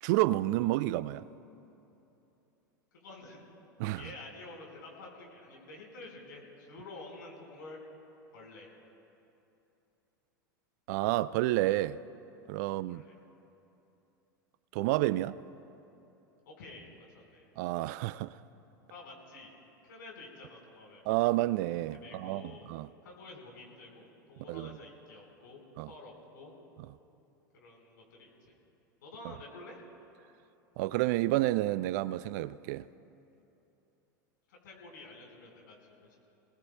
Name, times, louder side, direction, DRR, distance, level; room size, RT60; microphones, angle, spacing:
voice 1, 0.0-1.2 3.8-4.0 10.9-12.0 12.5-13.0 14.7-15.4 17.6-18.4 21.1-22.9 24.5-24.7 25.8-25.9 30.8-32.8, right 17 dB, 55° right, 0.4 m, -30 dB
voice 2, 2.9-3.4 3.9-7.8 8.3-8.7 12.6-13.1 16.4-17.4 18.9-19.5 19.8-21.2 21.9-22.7 23.0-26.5 27.5-28.5 29.0-29.8 34.5-36.2, left 2 dB, 70° left, 4.5 m, -50 dB
28.0 x 18.5 x 2.2 m
hypercardioid pair, 95°, 11 cm